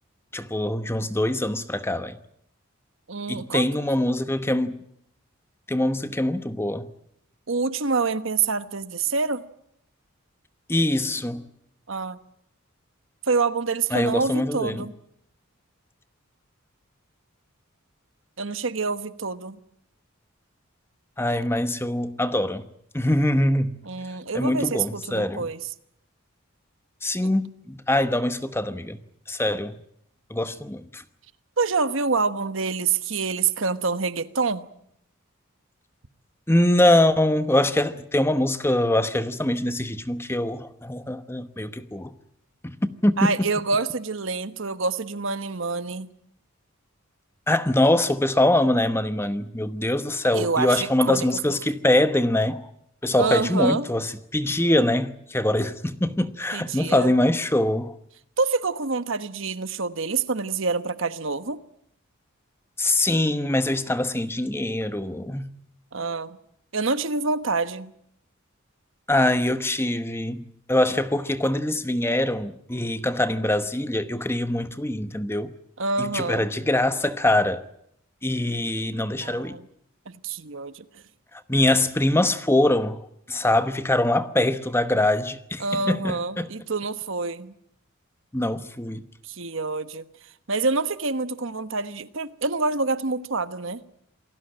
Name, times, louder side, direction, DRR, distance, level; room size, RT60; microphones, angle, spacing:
voice 1, 0.3-2.2 3.3-4.7 5.7-6.9 10.7-11.4 13.9-14.8 21.2-22.7 22.9-23.7 24.3-25.5 27.0-29.0 29.3-29.8 30.3-31.0 36.5-42.1 42.6-43.3 47.5-52.7 53.0-58.0 62.8-65.5 69.1-75.5 76.0-77.6 78.2-79.6 81.3-83.0 83.3-86.5 88.3-89.0, left 1 dB, 10° left, 1.0 m, -23 dB
voice 2, 3.1-3.7 7.5-9.4 11.9-12.2 13.3-14.9 18.4-19.6 23.8-25.6 31.6-34.7 43.2-46.1 50.3-51.6 53.2-53.9 56.5-57.1 58.4-61.6 65.9-66.4 66.7-67.9 75.8-76.5 79.2-79.7 80.1-80.8 85.6-87.5 89.2-90.1 90.5-93.8, right 4 dB, 60° right, 1.2 m, -26 dB
28.0 x 18.5 x 8.8 m
head